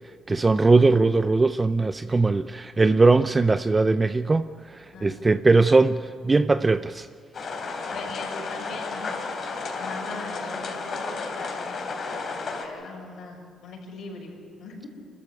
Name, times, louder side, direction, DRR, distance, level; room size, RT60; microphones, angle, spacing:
voice 1, 0.3-7.1, right 3 dB, 25° right, 12 dB, 0.5 m, -20 dB
voice 2, 4.9-5.4 7.9-9.1 9.5-11.9 12.3-14.9, left 3 dB, 70° left, 0 dB, 6.7 m, -40 dB
sound 1, 7.3-12.6, left 4 dB, 55° left, 3.4 m, -32 dB
25.5 x 14.0 x 9.8 m, 2.3 s
cardioid pair, 90°, 0 cm